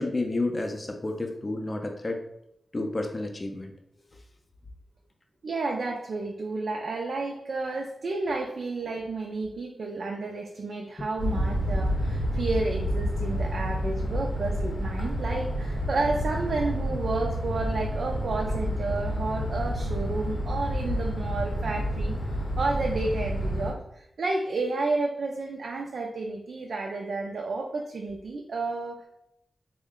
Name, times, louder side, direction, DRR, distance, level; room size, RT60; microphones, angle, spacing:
voice 1, 0.0-2.2 2.7-3.7, left 2 dB, 30° left, 3 dB, 0.4 m, -30 dB
voice 2, 5.4-29.1, right 3 dB, 70° right, 1 dB, 0.4 m, -31 dB
sound 1, 11.2-23.7, equal, 70° left, 0.7 m, -29 dB
3.6 x 2.1 x 3.6 m, 0.78 s
wide cardioid pair, 140°, 0 cm